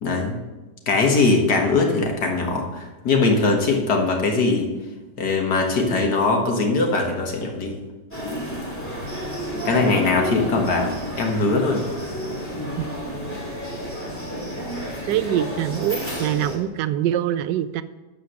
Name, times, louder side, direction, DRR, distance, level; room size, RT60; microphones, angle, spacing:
voice 1, 0.0-0.4 0.9-4.7 5.2-7.8 9.7-11.9, left 3 dB, 70° left, 1 dB, 2.1 m, -21 dB
sound 1, 8.1-16.6, equal, 5° left, 2.7 m, -31 dB
voice 2, 15.1-17.8, right 11 dB, 90° right, 14 dB, 1.2 m, -24 dB
13.0 x 5.0 x 6.4 m, 1.1 s
omnidirectional pair, 1.8 m